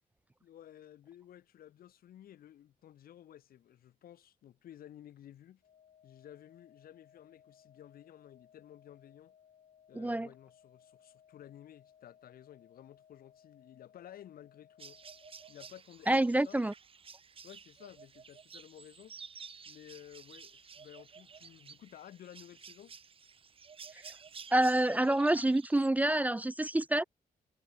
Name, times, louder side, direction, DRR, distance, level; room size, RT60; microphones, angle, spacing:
voice 1, 0.4-5.6 6.0-9.3 9.9-15.0 15.5-16.6 17.4-19.2 19.7-23.0, left 11 dB, 85° left, 4.3 m, -54 dB
sound 1, 5.6-15.6, left 8 dB, 60° left, 6.5 m, -63 dB
voice 2, 10.0-10.3 16.1-16.7 24.5-27.0, right 1 dB, 10° right, 0.5 m, -27 dB
sound 2, 14.8-25.9, right 6 dB, 40° right, 1.6 m, -52 dB
cardioid pair, 135°, 15 cm